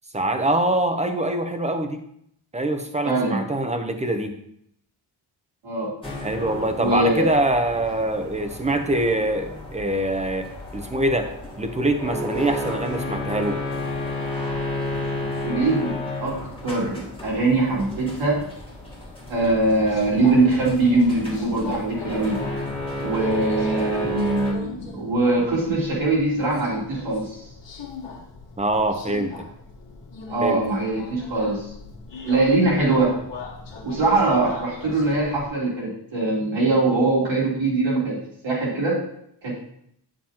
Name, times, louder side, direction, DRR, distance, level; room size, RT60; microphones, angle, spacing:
voice 1, 0.1-2.0 2.5-4.3 6.2-10.5 10.7-11.3 11.6-13.6 28.6-29.3 30.4-30.6, right 1 dB, 15° right, 6 dB, 0.7 m, -24 dB
voice 2, 3.0-3.4 5.6-5.9 6.8-7.3 15.4-15.9 16.2-18.4 19.3-22.4 23.0-27.4 30.3-31.7 32.2-33.2 33.8-39.0 39.4-39.5, right 2 dB, 85° right, -5 dB, 3.4 m, -22 dB
sound 1, 6.0-24.5, left 1 dB, 10° left, 1.4 m, -32 dB
Subway metro underground, 19.3-35.5, left 3 dB, 70° left, 1.6 m, -39 dB
8.9 x 7.7 x 2.9 m, 0.70 s
wide cardioid pair, 170°, 45 cm